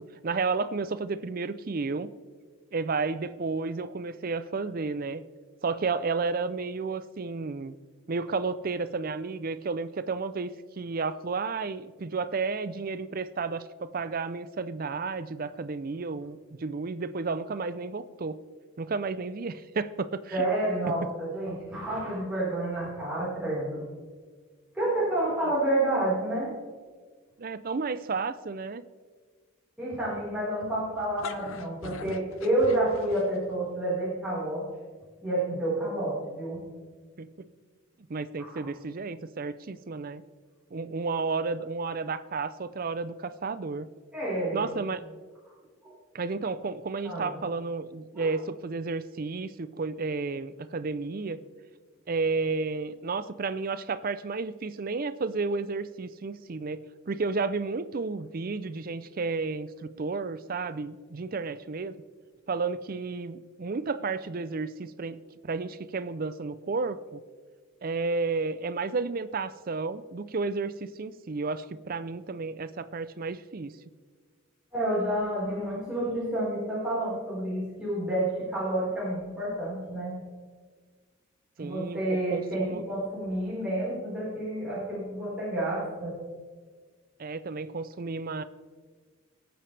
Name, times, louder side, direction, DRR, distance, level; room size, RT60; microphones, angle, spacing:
voice 1, 0.0-2.1 2.7-5.2 5.6-7.7 8.1-18.4 18.8-20.5 20.8-20.9 25.4-25.5 27.4-28.8 37.2-37.5 38.1-40.2 40.7-43.9 44.5-45.1 46.1-51.4 52.1-62.0 62.5-67.2 67.8-73.7 81.6-82.8 87.2-88.4, right 4 dB, 45° right, 14 dB, 0.5 m, -32 dB
voice 2, 20.3-23.9 24.7-26.5 29.8-34.7 35.2-36.6 44.1-44.7 45.8-45.9 47.0-47.4 48.1-48.3 74.7-80.2 81.6-86.2, right 1 dB, 5° right, -10 dB, 4.4 m, -29 dB
sound 1, 31.0-33.6, left 5 dB, 70° left, 0.6 m, -41 dB
20.0 x 8.8 x 3.4 m, 1.5 s
head